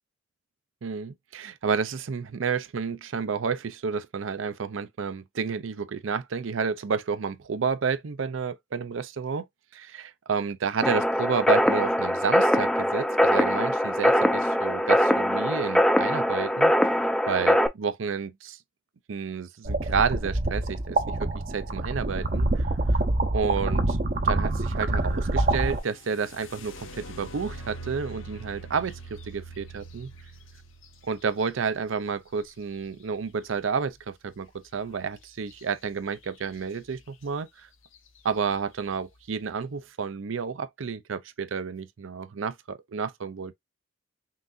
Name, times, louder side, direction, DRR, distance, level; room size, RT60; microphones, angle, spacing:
voice 1, 0.8-9.5 9.7-16.7 17.3-18.6 19.1-22.7 23.3-24.0 24.2-30.1 31.1-37.7 38.2-43.5, right 5 dB, 80° right, 0.5 m, -30 dB
sound 1, 10.8-17.7, equal, 5° left, 0.4 m, -22 dB
sound 2, 19.6-25.8, right 2 dB, 45° right, 0.7 m, -26 dB
sound 3, 25.6-33.4 35.5-35.6 36.1-36.6 37.2-37.3 37.8-38.2, right 2 dB, 90° left, 0.9 m, -44 dB
5.8 x 2.7 x 2.5 m
head